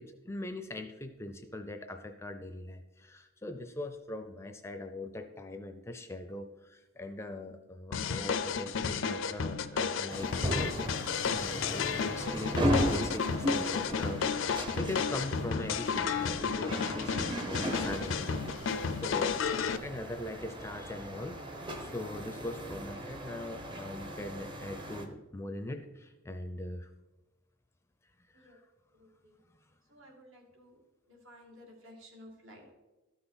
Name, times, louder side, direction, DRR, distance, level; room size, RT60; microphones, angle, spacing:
voice 1, 0.0-10.7 11.0-18.7 19.0-19.4 19.8-26.9 28.3-28.6, left 1 dB, 15° left, 7 dB, 0.5 m, -41 dB
sound 1, 7.9-19.8, left 6 dB, 65° left, 0.5 m, -32 dB
sound 2, 10.1-25.1, equal, 25° right, 0.9 m, -36 dB
voice 2, 28.9-29.4 29.9-30.8 31.1-32.7, equal, 70° right, 0 dB, 2.3 m, -54 dB
13.0 x 5.8 x 4.1 m, 1.1 s
head